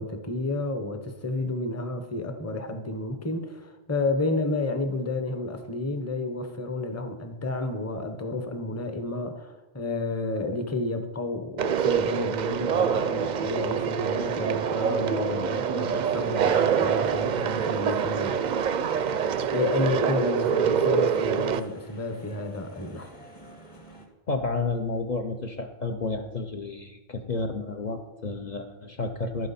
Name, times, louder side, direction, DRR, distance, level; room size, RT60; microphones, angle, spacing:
voice 1, 0.0-18.3 19.2-23.1, left 2 dB, 15° left, 7 dB, 0.8 m, -31 dB
Conversation, 11.6-21.6, right 7 dB, 55° right, 0.5 m, -25 dB
sound 1, 16.1-24.1, left 1 dB, 30° left, 1.4 m, -49 dB
voice 2, 24.3-29.5, left 3 dB, 50° left, 3 dB, 0.7 m, -31 dB
11.5 x 9.2 x 4.2 m, 1.1 s
omnidirectional pair, 1.0 m